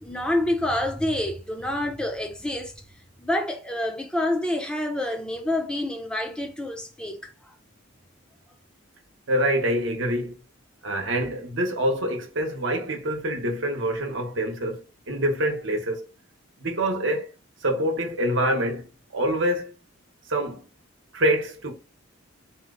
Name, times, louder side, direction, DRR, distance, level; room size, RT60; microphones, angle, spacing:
voice 1, 0.0-2.7 3.2-7.3, left 1 dB, 5° left, 0.7 m, -27 dB
voice 2, 9.3-10.3 10.8-14.8 15.1-16.1 16.6-17.3 17.6-19.7 20.3-20.6 21.1-21.7, right 1 dB, 65° right, 1.0 m, -25 dB
4.3 x 2.2 x 3.8 m
head